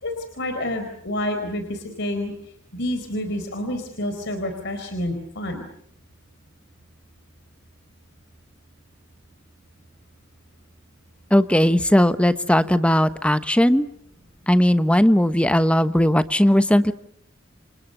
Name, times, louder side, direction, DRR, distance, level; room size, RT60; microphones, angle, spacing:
voice 1, 0.0-2.3 2.7-5.7, left 1 dB, 60° left, 6 dB, 4.3 m, -28 dB
voice 2, 11.3-13.9 14.5-16.9, equal, 5° left, 11 dB, 1.1 m, -18 dB
29.0 x 28.0 x 6.7 m, 0.70 s
head